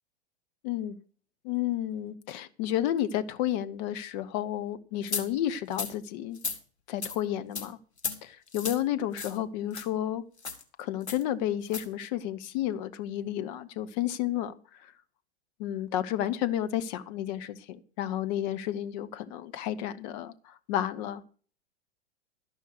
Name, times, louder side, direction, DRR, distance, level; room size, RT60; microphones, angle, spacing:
voice 1, 0.6-1.0 1.4-6.4 6.9-7.8 8.2-10.2 10.8-14.9 15.6-21.2, left 12 dB, 40° left, 1.1 m, -31 dB
sound 1, 5.1-5.2 5.7-5.9 6.3-6.6 7.0-7.2 7.5-7.7 8.0-8.2 8.5-8.8 9.2-9.4 9.7-9.8 10.4-10.6 11.1-11.2 11.6-11.8, left 5 dB, 75° left, 2.1 m, -34 dB
13.0 x 5.6 x 8.1 m
figure-of-eight pair, 95°, 33 cm